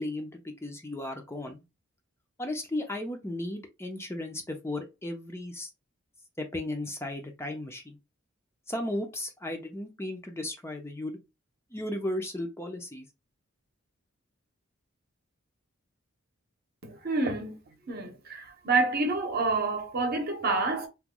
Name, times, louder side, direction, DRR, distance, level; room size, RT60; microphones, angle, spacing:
voice 1, 0.0-1.6 2.4-5.7 6.4-8.0 8.7-11.2 11.7-13.1, left 1 dB, 10° left, 0.5 m, -35 dB
voice 2, 16.8-17.6 17.9-20.9, right 3 dB, 50° right, 0.8 m, -28 dB
2.9 x 2.1 x 3.7 m
head